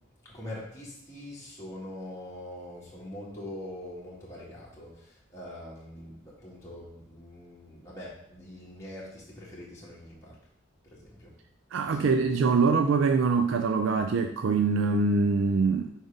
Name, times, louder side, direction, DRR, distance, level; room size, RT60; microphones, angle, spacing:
voice 1, 0.2-10.4 10.8-11.3 11.8-12.3, left 1 dB, 15° left, -7 dB, 1.4 m, -43 dB
voice 2, 11.7-15.9, right 4 dB, 70° right, 6 dB, 0.4 m, -24 dB
4.7 x 3.9 x 5.1 m, 0.70 s
head